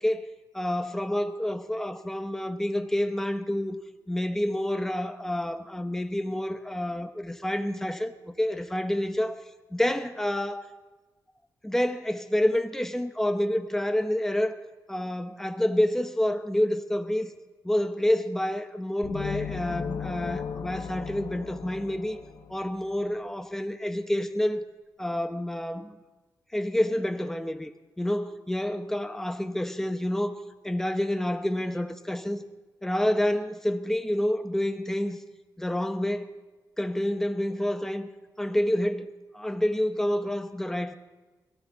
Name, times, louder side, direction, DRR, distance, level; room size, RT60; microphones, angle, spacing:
voice 1, 0.0-3.8 4.1-9.4 9.7-10.6 11.6-14.6 14.9-17.3 17.6-22.2 22.5-24.6 25.0-26.0 26.5-27.7 28.0-32.4 32.8-35.2 35.6-36.3 36.8-38.1 38.4-40.9, left 1 dB, 5° left, 7 dB, 1.0 m, -28 dB
sound 1, 19.0-22.8, left 6 dB, 75° left, 1.0 m, -36 dB
22.5 x 15.0 x 4.1 m, 1.2 s
wide cardioid pair, 130°, 8 cm